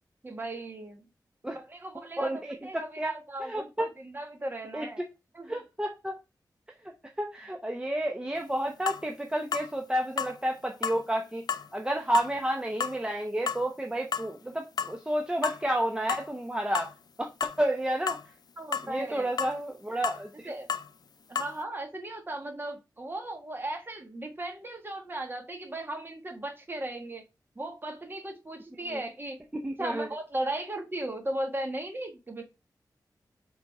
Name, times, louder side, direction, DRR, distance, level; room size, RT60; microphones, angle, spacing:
voice 1, 0.2-1.0 1.5-2.3 2.6-5.0 5.3-5.6 7.5-7.6 18.6-19.5 20.4-20.7 21.3-27.2 27.5-29.4 29.8-32.4, right 1 dB, 30° right, 4 dB, 1.5 m, -37 dB
voice 2, 2.2-3.1 3.4-3.9 4.7-4.9 5.5-6.2 7.2-11.4 11.7-16.9 17.2-17.3 17.6-18.2 18.8-20.5 28.9-29.0 29.6-30.1, right 1 dB, 10° right, 2 dB, 0.7 m, -30 dB
sound 1, 8.4-8.5 8.9-9.0 9.5-9.7 10.2-10.3 10.8-11.0 11.5-11.7 12.1-12.3 12.8-13.0 13.5-13.6 14.1-14.3 14.8-15.0 15.4-15.6 16.1-16.3 16.7-16.9 17.4-17.6 18.1-18.2 18.7-18.9 19.4-19.5 20.0-20.2 20.7-20.9 21.3-21.5, left 6 dB, 65° left, 0.4 m, -31 dB
5.1 x 4.0 x 4.7 m, 0.26 s
wide cardioid pair, 120°, 7 cm